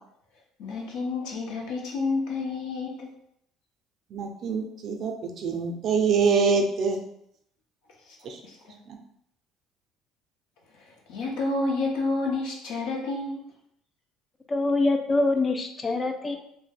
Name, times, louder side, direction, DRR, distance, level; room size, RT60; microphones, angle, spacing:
voice 1, 0.6-3.1 8.1-8.2 8.4-8.8 10.7-13.4, left 3 dB, 80° left, 0 dB, 0.6 m, -30 dB
voice 2, 4.1-7.0 8.2-8.4 8.9-9.0, right 5 dB, 50° right, 3 dB, 0.4 m, -25 dB
voice 3, 14.5-16.4, left 2 dB, 20° left, 5 dB, 0.3 m, -24 dB
2.3 x 2.0 x 3.3 m, 0.73 s
cardioid pair, 125°, 0 cm